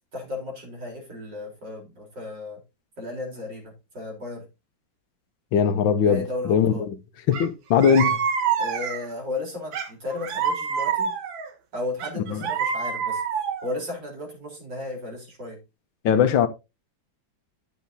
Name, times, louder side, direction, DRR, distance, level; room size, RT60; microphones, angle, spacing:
voice 1, 0.1-2.6 3.0-4.5 6.0-6.9 8.6-11.2 11.7-13.2 13.6-15.6, left 2 dB, 65° right, 4.6 m, -34 dB
voice 2, 5.5-7.0 7.3-8.2 12.3-12.4 16.0-16.5, left 7 dB, 75° left, 1.5 m, -20 dB
sound 1, 7.3-7.5 7.8-9.2 9.7-11.5 12.0-13.8, right 7 dB, 80° right, 2.0 m, -26 dB
10.5 x 8.2 x 2.7 m
omnidirectional pair, 2.1 m